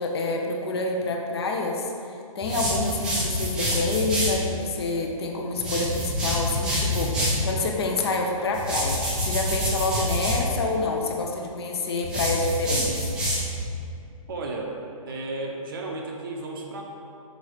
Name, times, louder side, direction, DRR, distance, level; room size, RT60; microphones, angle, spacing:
voice 1, 0.0-1.9 2.3-13.1, left 3 dB, 45° left, 1 dB, 0.8 m, -27 dB
sound 1, 2.4-4.4 5.5-7.4 8.5-10.4 12.0-13.6, equal, 5° right, 0.4 m, -27 dB
voice 2, 14.3-14.7 15.0-16.8, right 2 dB, 40° right, 0 dB, 0.8 m, -33 dB
6.4 x 4.2 x 4.9 m, 2.5 s
hypercardioid pair, 165°, 18 cm